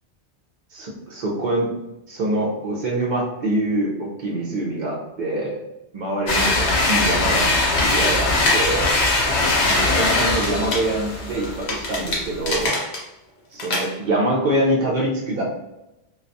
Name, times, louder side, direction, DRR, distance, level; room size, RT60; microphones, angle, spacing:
voice 1, 0.7-1.7 2.1-5.6 5.9-8.9 9.7-12.7 13.5-15.4, right 1 dB, 50° right, -2 dB, 0.7 m, -25 dB
sound 1, 6.3-12.7, left 2 dB, 85° left, 0.9 m, -21 dB
sound 2, 6.5-8.6 8.9-9.8 10.1-13.0 13.6-13.9, left 2 dB, 60° left, 0.9 m, -28 dB
2.3 x 2.3 x 2.6 m, 0.92 s
omnidirectional pair, 1.1 m